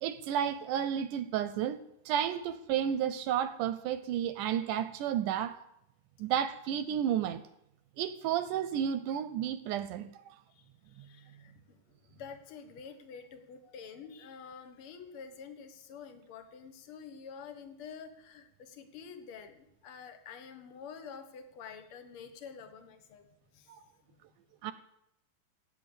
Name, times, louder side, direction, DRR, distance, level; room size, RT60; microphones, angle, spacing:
voice 1, 0.0-1.8 2.1-5.6 6.2-7.4 8.0-10.1 23.8-23.9 24.6-24.7, right 9 dB, 80° right, 2.0 m, -32 dB
voice 2, 10.5-23.3 23.5-23.7, left 6 dB, 55° left, 1.7 m, -48 dB
16.0 x 9.2 x 6.9 m
omnidirectional pair, 4.0 m